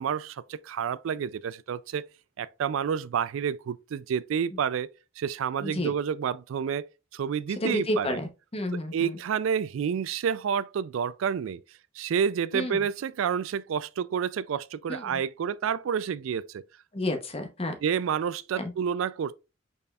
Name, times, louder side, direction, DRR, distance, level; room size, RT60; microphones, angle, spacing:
voice 1, 0.0-2.1 2.4-4.9 5.2-8.2 8.9-11.6 12.0-16.6 17.8-19.3, right 7 dB, 85° right, 0.3 m, -29 dB
voice 2, 5.6-5.9 7.6-9.2 12.5-12.8 14.9-15.2 16.9-17.7 18.6-18.7, left 1 dB, 30° left, 0.8 m, -31 dB
5.4 x 4.2 x 2.3 m
head